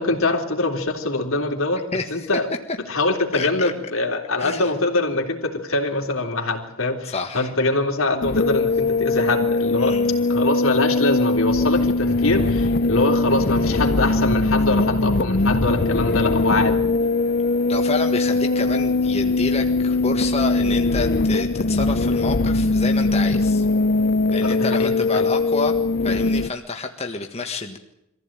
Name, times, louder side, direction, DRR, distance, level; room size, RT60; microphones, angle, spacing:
voice 1, 0.0-2.5 2.9-10.0 10.3-16.8 24.4-25.3, left 2 dB, 80° left, 3 dB, 3.6 m, -23 dB
voice 2, 1.9-2.3 3.3-3.7 4.4-4.7 7.1-7.5 9.8-10.1 17.7-23.7 24.3-25.7 26.0-27.8, left 3 dB, 30° left, 4 dB, 1.6 m, -29 dB
sound 1, 8.2-26.5, left 3 dB, 50° left, 0.8 m, -21 dB
24.5 x 15.5 x 9.0 m, 0.83 s
head